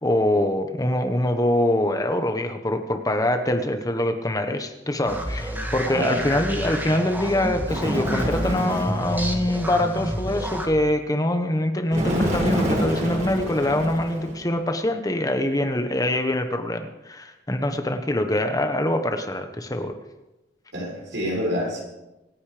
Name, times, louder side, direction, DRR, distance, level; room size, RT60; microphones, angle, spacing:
voice 1, 0.0-20.0, left 1 dB, 20° left, 7 dB, 1.2 m, -24 dB
sound 1, 5.1-10.7, equal, 10° right, 1.7 m, -30 dB
voice 2, 5.9-6.2 20.7-21.8, left 1 dB, 80° right, -2 dB, 6.8 m, -27 dB
Bird, 7.7-9.1 11.9-14.4, equal, 45° right, 4.8 m, -26 dB
26.5 x 9.6 x 5.1 m, 1.0 s
head